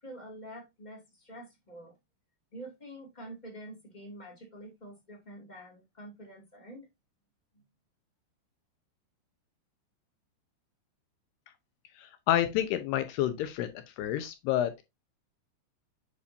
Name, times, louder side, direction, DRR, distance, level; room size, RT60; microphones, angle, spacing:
voice 1, 0.0-1.9 2.5-6.8, right 1 dB, 25° left, 0.9 m, -47 dB
voice 2, 12.0-13.7 14.0-14.8, left 12 dB, 80° left, 2.5 m, -29 dB
8.2 x 5.3 x 2.7 m
omnidirectional pair, 5.2 m